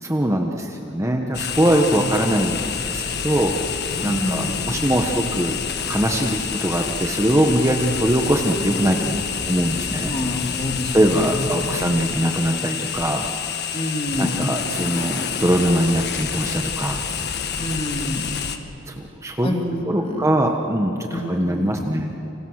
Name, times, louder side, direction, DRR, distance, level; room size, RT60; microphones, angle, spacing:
voice 1, 0.0-3.6 4.0-5.6 5.9-10.2 10.9-13.2 14.2-17.0 18.9-19.6 19.9-22.1, right 1 dB, 15° right, 2 dB, 1.3 m, -22 dB
sound 1, 1.3-18.6, left 7 dB, 50° left, 1.4 m, -28 dB
voice 2, 4.1-4.8 10.1-11.4 11.7-11.9 13.7-14.5 17.6-18.5 19.4-20.3 21.1-21.7, left 1 dB, 25° left, 2 dB, 2.6 m, -28 dB
29.5 x 26.5 x 6.5 m, 3.0 s
head